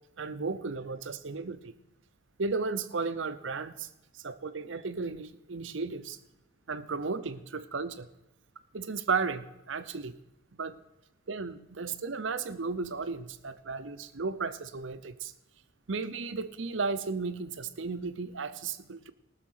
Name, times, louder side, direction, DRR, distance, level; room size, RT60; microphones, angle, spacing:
voice 1, 0.2-1.7 2.4-3.9 4.1-6.2 6.7-8.1 8.7-10.1 10.6-10.8 11.3-15.3 15.9-19.1, right 4 dB, 80° right, 12 dB, 0.8 m, -34 dB
18.5 x 6.6 x 6.5 m, 0.91 s
head